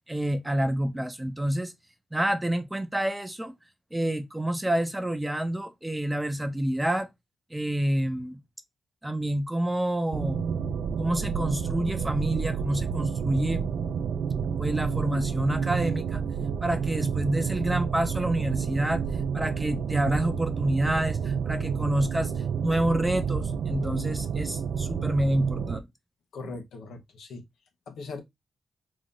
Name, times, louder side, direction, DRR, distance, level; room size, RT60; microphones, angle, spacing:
voice 1, 0.1-1.7 2.1-3.5 3.9-7.1 7.5-8.4 9.0-10.4 11.0-13.6 14.6-16.2 16.6-19.1 19.3-22.3 22.6-25.9, right 1 dB, 10° right, 0.5 m, -28 dB
sound 1, 10.1-25.8, right 6 dB, 80° right, 0.3 m, -30 dB
voice 2, 26.3-27.4 27.9-28.2, left 3 dB, 90° left, 1.0 m, -39 dB
3.0 x 2.6 x 3.6 m
cardioid pair, 85°, 0 cm